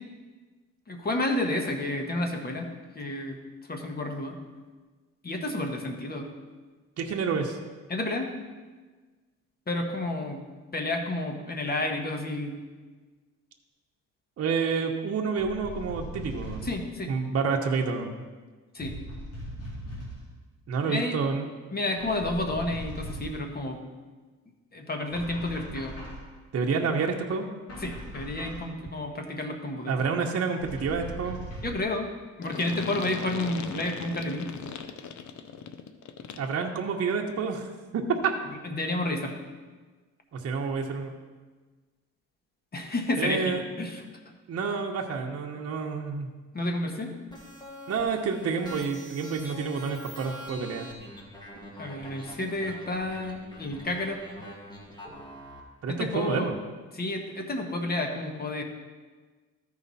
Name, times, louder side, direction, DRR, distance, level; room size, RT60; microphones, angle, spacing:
voice 1, 0.9-3.4 3.7-4.3 5.2-6.3 7.9-8.3 9.7-10.4 10.7-12.5 16.6-17.1 18.7-18.9 20.9-21.2 21.7-23.8 24.7-25.9 27.8-29.9 31.6-32.1 32.4-34.5 38.6-39.4 42.7-44.0 46.5-47.1 51.8-54.2 55.9-56.5 56.9-58.6, left 2 dB, 30° left, 3 dB, 1.4 m, -30 dB
voice 2, 7.0-7.6 14.4-16.7 17.1-18.2 20.7-21.5 26.5-27.5 29.9-31.4 36.4-37.7 37.9-38.3 40.3-41.1 43.2-43.6 44.5-46.3 47.9-50.9 55.8-56.6, right 5 dB, 50° right, 1 dB, 1.0 m, -29 dB
sound 1, 15.4-16.9 18.8-20.3 22.0-23.5 25.1-26.3 27.7-28.7 30.6-31.9, right 1 dB, 55° left, 2.6 m, -40 dB
sound 2, 32.4-36.6, left 7 dB, 70° left, 0.7 m, -39 dB
sound 3, 47.3-55.6, equal, 15° left, 1.6 m, -44 dB
13.5 x 4.9 x 4.1 m, 1.4 s
cardioid pair, 90°, 30 cm